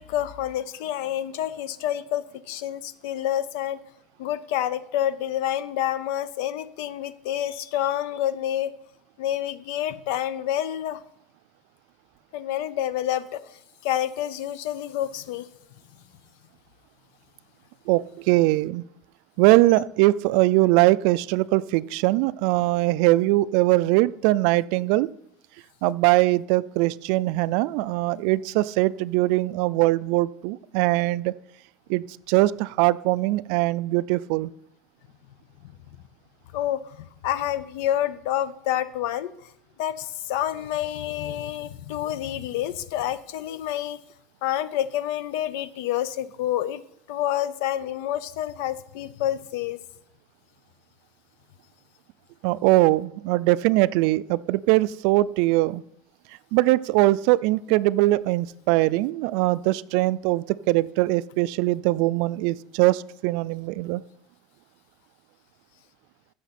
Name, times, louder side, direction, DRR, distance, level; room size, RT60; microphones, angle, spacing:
voice 1, 0.0-3.8 4.2-8.7 9.2-11.0 12.3-13.4 13.8-15.5 36.5-37.0 37.2-39.3 39.8-44.0 44.4-46.8 47.1-49.8, left 11 dB, 70° left, 16 dB, 0.6 m, -28 dB
voice 2, 17.9-18.8 19.4-25.1 25.8-31.3 31.9-34.5 52.4-55.8 56.5-64.0, right 18 dB, 60° right, 18 dB, 0.3 m, -21 dB
15.0 x 6.5 x 4.2 m, 0.74 s
cardioid pair, 175°, 0 cm